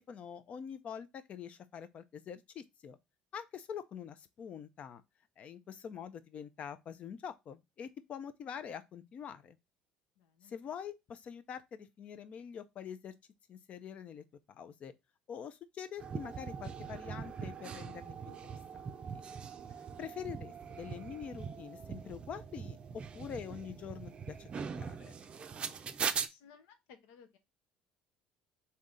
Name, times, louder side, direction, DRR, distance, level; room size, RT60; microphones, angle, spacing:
voice 1, 0.0-3.0 3.3-5.0 5.4-9.6 10.4-13.1 13.5-14.9 15.3-18.6 19.1-19.2 20.0-25.1, left 8 dB, 50° left, 0.5 m, -45 dB
voice 2, 10.2-10.5 26.3-27.4, left 6 dB, 85° left, 0.8 m, -59 dB
sound 1, 16.0-26.3, right 6 dB, 35° right, 0.5 m, -41 dB
3.5 x 2.8 x 3.8 m
supercardioid pair, 95°, 3 cm